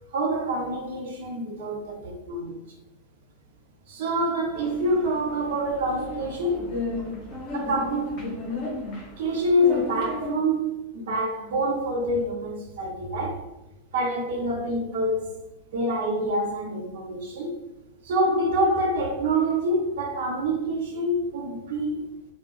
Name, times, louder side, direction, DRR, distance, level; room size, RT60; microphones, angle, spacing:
voice 1, 0.1-2.6 3.9-6.7 7.5-8.3 9.2-13.5 13.9-15.3 15.7-17.7 18.0-22.1, right 1 dB, 55° right, 0.8 m, -26 dB
sound 1, 4.5-10.3, left 2 dB, 35° left, 1.3 m, -34 dB
3.3 x 2.3 x 3.2 m
figure-of-eight pair, 90°, 0 cm